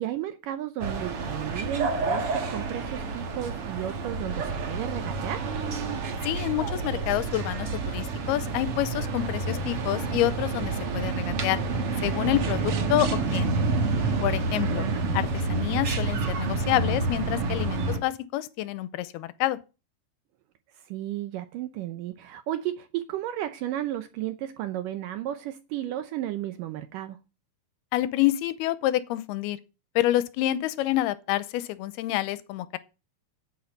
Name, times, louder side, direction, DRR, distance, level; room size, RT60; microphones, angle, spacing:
voice 1, 0.0-5.5 14.6-15.0 20.7-27.2, right 12 dB, 75° right, 2.0 m, -33 dB
sound 1, 0.8-18.0, right 3 dB, 50° right, 2.0 m, -29 dB
voice 2, 6.2-11.6 12.0-13.5 14.2-14.9 15.1-19.6 27.9-29.6 30.0-32.8, left 15 dB, 85° left, 2.6 m, -28 dB
9.6 x 8.6 x 5.2 m
omnidirectional pair, 4.5 m